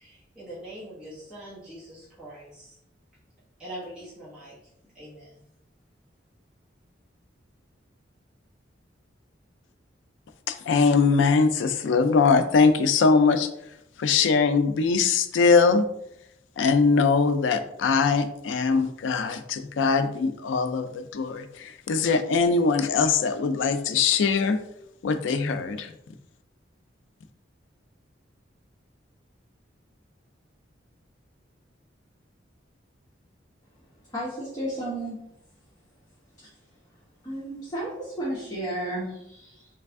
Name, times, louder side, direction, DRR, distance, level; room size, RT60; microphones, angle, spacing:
voice 1, 0.0-2.8 3.6-4.6 4.9-5.4, right 1 dB, 5° right, -10 dB, 1.2 m, -43 dB
voice 2, 10.5-13.5 14.0-15.8 16.6-20.9 21.1-24.6 25.0-25.9, left 4 dB, 85° left, 9 dB, 0.4 m, -22 dB
voice 3, 34.0-35.2 36.4-36.5 37.2-39.7, right 1 dB, 20° left, -8 dB, 1.0 m, -33 dB
3.3 x 3.2 x 3.4 m, 0.79 s
head